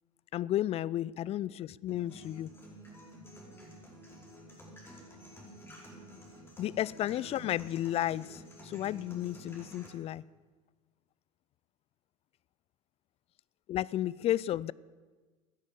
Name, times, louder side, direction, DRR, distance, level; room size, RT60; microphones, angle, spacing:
voice 1, 0.3-2.5 6.6-10.2 13.7-14.7, left 13 dB, 35° left, 0.4 m, -33 dB
sound 1, 1.9-9.9, equal, 15° left, 4.8 m, -50 dB
16.5 x 10.5 x 7.4 m
hypercardioid pair, 80°, 17 cm